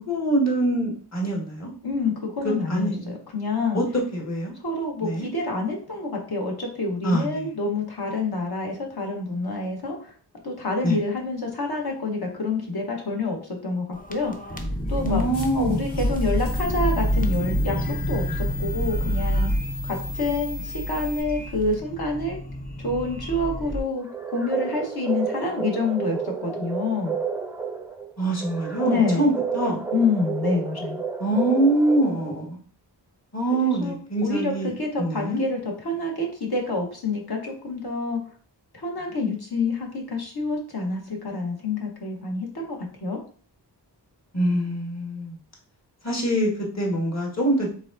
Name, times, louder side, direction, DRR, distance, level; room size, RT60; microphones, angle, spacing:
voice 1, 0.1-1.7 2.4-3.1 3.7-4.5 5.0-5.3 7.0-7.5 10.8-11.0 15.0-15.9 28.2-29.8 31.2-32.6 33.3-34.7 35.0-35.4 44.3-45.4 46.0-47.7, right 1 dB, 35° left, -2 dB, 1.6 m, -24 dB
voice 2, 1.8-3.8 4.5-10.1 10.4-14.3 14.9-15.3 15.5-18.2 18.6-19.5 19.8-22.4 22.8-27.1 28.8-29.3 29.9-31.0 33.6-34.0 34.2-38.2 38.7-43.2, left 3 dB, 60° left, 0 dB, 1.3 m, -27 dB
sound 1, 13.9-23.8, equal, 20° left, 0.7 m, -28 dB
sound 2, 14.9-21.2, left 4 dB, 80° left, 2.2 m, -38 dB
sound 3, 24.0-32.5, right 6 dB, 5° right, 0.4 m, -31 dB
4.8 x 3.6 x 2.6 m, 0.43 s
wide cardioid pair, 85°, 43 cm